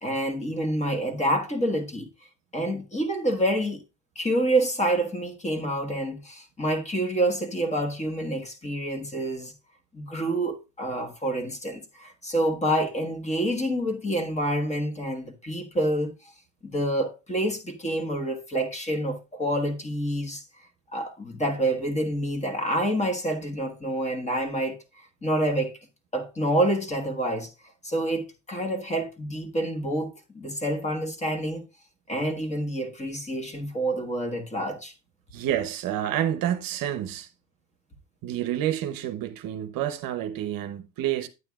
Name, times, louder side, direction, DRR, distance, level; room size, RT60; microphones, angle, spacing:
voice 1, 0.0-2.1 2.5-3.8 4.1-9.5 9.9-16.1 16.6-20.4 20.9-24.8 25.2-25.8 26.1-27.5 27.8-31.6 32.1-34.9, right 1 dB, 15° left, 1.4 m, -27 dB
voice 2, 35.3-37.3 38.2-41.3, right 11 dB, 50° right, 0.9 m, -29 dB
9.6 x 9.0 x 2.4 m
cardioid pair, 130°, 44 cm